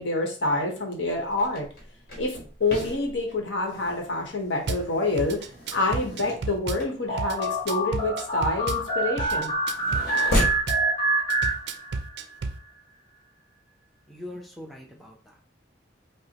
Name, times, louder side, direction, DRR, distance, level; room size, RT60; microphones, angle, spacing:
voice 1, 0.0-1.7 2.2-2.3 2.6-5.4 5.7-9.5, left 2 dB, 70° left, 1 dB, 1.1 m, -27 dB
sound 1, 1.0-10.7, equal, 50° left, 1.3 m, -34 dB
Drum kit / Bass drum, 4.7-4.8 5.2-6.8 7.2-8.8 9.2-10.8 11.3-12.6, right 3 dB, 55° right, 0.4 m, -32 dB
sound 2, 7.1-12.2, right 2 dB, 30° left, 1.8 m, -27 dB
voice 2, 14.1-15.4, left 1 dB, ahead, 0 dB, 0.6 m, -42 dB
5.3 x 2.1 x 2.9 m, 0.39 s
head